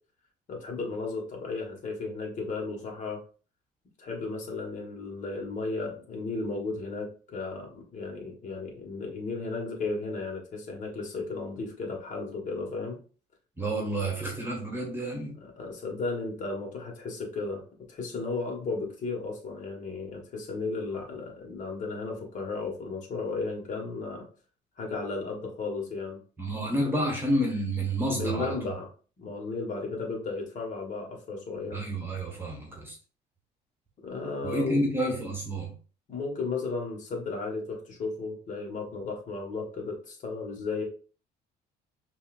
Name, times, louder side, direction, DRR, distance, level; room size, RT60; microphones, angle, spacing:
voice 1, 0.5-3.2 4.0-13.0 15.6-17.6 17.9-24.3 24.8-26.2 28.1-28.9 29.2-31.8 34.0-34.8 36.1-40.8, left 3 dB, 45° left, 0 dB, 1.5 m, -34 dB
voice 2, 13.6-15.3 26.4-28.6 31.7-33.0 34.4-35.7, right 1 dB, 15° right, -1 dB, 1.5 m, -29 dB
5.5 x 2.8 x 2.5 m, 0.39 s
cardioid pair, 110°, 17 cm